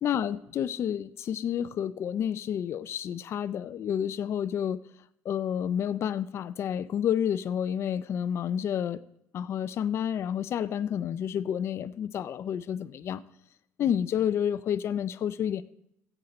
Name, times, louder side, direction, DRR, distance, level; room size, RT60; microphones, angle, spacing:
voice 1, 0.0-4.8 5.2-9.0 9.3-13.2 13.8-15.6, left 9 dB, 45° left, 13 dB, 0.4 m, -30 dB
15.0 x 8.1 x 4.2 m, 0.77 s
cardioid pair, 125°, 6 cm